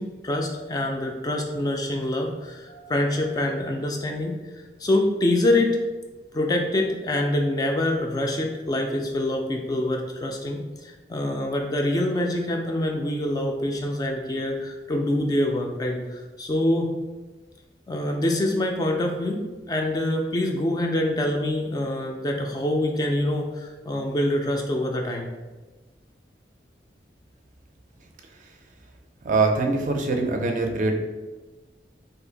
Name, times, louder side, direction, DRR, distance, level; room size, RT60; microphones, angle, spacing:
voice 1, 0.0-4.4 4.8-5.8 6.3-16.9 17.9-25.3, left 1 dB, 20° left, 2 dB, 0.3 m, -25 dB
voice 2, 29.2-31.0, right 3 dB, 45° right, 3 dB, 0.4 m, -23 dB
2.7 x 2.4 x 3.8 m, 1.2 s
head